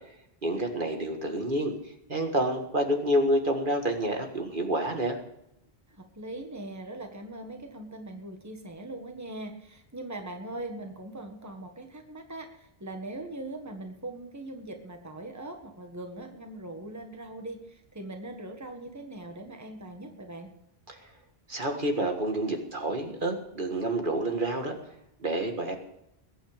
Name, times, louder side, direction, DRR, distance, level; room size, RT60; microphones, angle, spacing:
voice 1, 0.4-1.7 2.1-5.2 20.9-21.0 21.5-24.8 25.2-25.8, right 1 dB, 50° right, 4 dB, 2.0 m, -28 dB
voice 2, 5.9-20.5, right 2 dB, 15° right, 4 dB, 1.7 m, -41 dB
21.5 x 9.1 x 5.1 m, 0.79 s
omnidirectional pair, 1.1 m